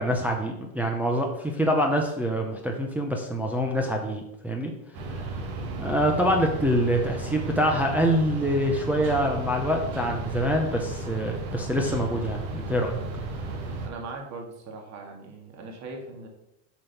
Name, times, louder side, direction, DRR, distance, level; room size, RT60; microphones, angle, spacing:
voice 1, 0.0-4.7 5.1-5.2 5.8-13.0, equal, 5° right, 0 dB, 0.7 m, -25 dB
sound 1, 4.9-13.9, right 2 dB, 85° right, 2.3 m, -34 dB
voice 2, 13.8-16.3, right 3 dB, 40° right, 2 dB, 2.0 m, -39 dB
7.3 x 5.3 x 5.8 m, 0.86 s
cardioid pair, 150°, 41 cm